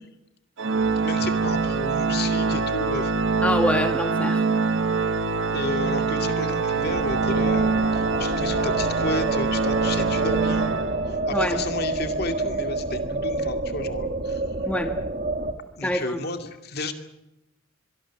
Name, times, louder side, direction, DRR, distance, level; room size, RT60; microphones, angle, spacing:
Organ, 0.6-11.4, right 4 dB, 70° right, 0.8 m, -24 dB
voice 1, 1.0-3.1 5.5-10.8 11.1-14.7 15.8-16.9, left 2 dB, 50° left, 7 dB, 2.4 m, -32 dB
voice 2, 3.4-4.5 11.3-11.6 14.6-15.0 15.8-16.2, left 1 dB, 5° left, 6 dB, 1.3 m, -25 dB
sound 1, 6.8-15.5, right 2 dB, 45° right, 1.9 m, -29 dB
24.0 x 23.5 x 7.3 m, 0.92 s
head